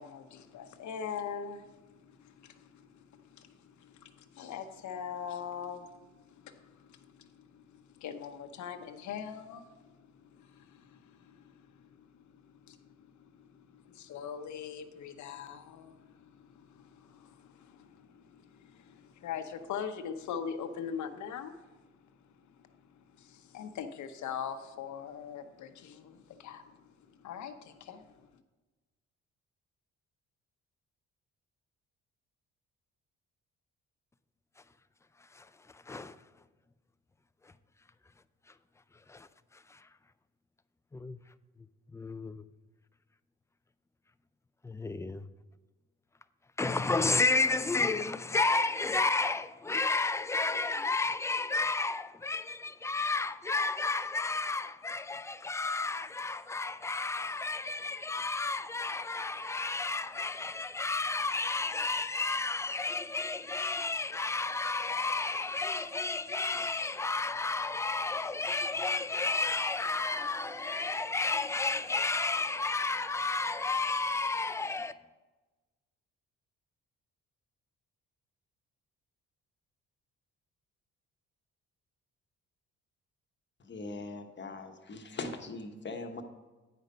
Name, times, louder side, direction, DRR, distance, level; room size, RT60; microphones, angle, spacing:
voice 1, 0.0-28.4, left 7 dB, 70° left, 0.9 m, -43 dB
voice 2, 35.7-36.2 39.1-39.3 39.5-39.9 40.9-41.2 41.9-42.5 44.6-45.2 46.6-74.9, left 3 dB, 10° left, 0.3 m, -32 dB
sound 1, 68.5-72.7, right 3 dB, 65° right, 3.1 m, -57 dB
voice 3, 83.6-86.2, left 3 dB, 35° left, 1.1 m, -41 dB
9.3 x 5.1 x 5.5 m
cardioid pair, 90°, 30 cm